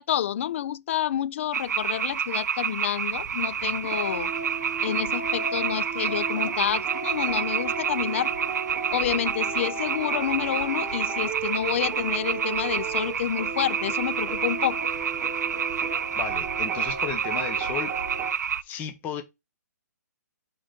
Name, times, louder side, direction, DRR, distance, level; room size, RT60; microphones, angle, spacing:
voice 1, 0.0-4.3 4.8-8.3 8.9-14.8, left 10 dB, 45° left, 0.4 m, -29 dB
sound 1, 1.5-18.6, right 8 dB, 70° right, 0.4 m, -29 dB
sound 2, 3.1-18.3, right 4 dB, 15° right, 1.4 m, -35 dB
voice 2, 16.1-17.9 18.6-19.2, left 8 dB, 15° left, 0.8 m, -34 dB
4.9 x 3.7 x 5.1 m
hypercardioid pair, 150°, 10 cm